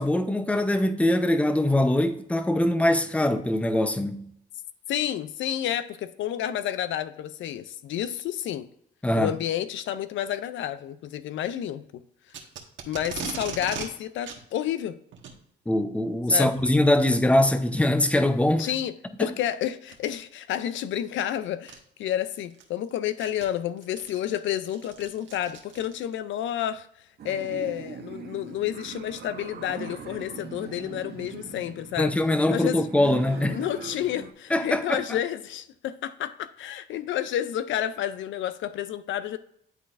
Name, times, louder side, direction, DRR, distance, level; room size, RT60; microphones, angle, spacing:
voice 1, 0.0-4.3 9.0-9.3 15.7-18.7 32.0-33.6 34.5-35.0, left 1 dB, 5° left, 0.6 m, -22 dB
voice 2, 4.9-8.7 9.2-12.0 12.9-15.0 16.3-16.5 18.6-18.9 19.2-26.9 27.2-32.1 32.5-32.9 33.5-39.4, left 11 dB, 70° left, 0.4 m, -30 dB
Packing tape duct tape, 12.3-13.9 14.2-14.4 15.1-15.4 16.5-16.8 17.5-17.6 18.2-18.3 19.8-20.1 21.2-21.3 21.7-21.8 22.3-26.2, right 7 dB, 70° right, 1.2 m, -39 dB
sound 1, 27.2-34.3, right 6 dB, 55° right, 0.9 m, -41 dB
10.5 x 4.0 x 2.5 m
cardioid pair, 90°, 20 cm